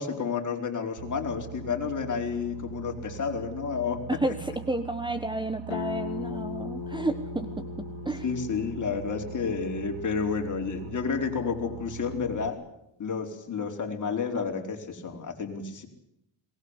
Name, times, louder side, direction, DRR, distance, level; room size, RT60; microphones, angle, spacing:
voice 1, 0.0-4.0 8.2-12.6 13.0-15.9, left 5 dB, 40° left, 2 dB, 4.6 m, -30 dB
Boat Water vehicle, 1.0-12.5, right 10 dB, 90° right, 1.3 m, -42 dB
voice 2, 4.1-7.6 8.0-8.2, right 2 dB, 10° right, 10 dB, 1.3 m, -31 dB
sound 1, 5.7-11.1, left 8 dB, 60° left, 1.8 m, -39 dB
23.0 x 20.0 x 8.3 m, 0.80 s
cardioid pair, 120°, 48 cm